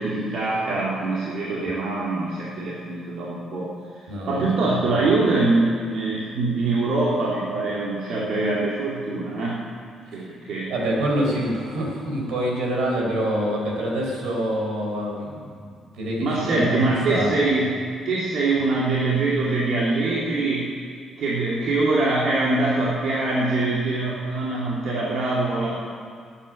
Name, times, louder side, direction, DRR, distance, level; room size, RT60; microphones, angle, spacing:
voice 1, 0.0-3.7 4.3-9.6 10.1-10.7 16.2-17.7 18.0-20.7 21.2-25.8, right 2 dB, 70° right, -6 dB, 2.5 m, -23 dB
voice 2, 4.1-4.5 4.8-4.9 10.1-10.2 10.7-15.5 16.0-16.8 17.1-17.3, right 1 dB, 85° right, -1 dB, 4.2 m, -26 dB
13.0 x 8.6 x 9.8 m, 2.1 s
cardioid pair, 90°, 0 cm